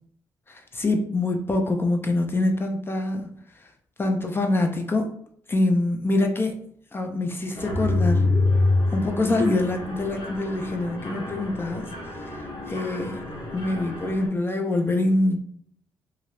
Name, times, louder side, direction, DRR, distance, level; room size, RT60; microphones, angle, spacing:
voice 1, 0.5-3.3 4.0-5.1 5.5-6.6 6.9-8.3 8.9-11.9 12.7-13.3 13.5-15.4, left 2 dB, 25° left, 4 dB, 0.5 m, -25 dB
Mechanisms, 7.6-14.3, left 2 dB, 65° left, 0.7 m, -27 dB
2.4 x 2.0 x 3.0 m, 0.63 s
supercardioid pair, 55°, 8 cm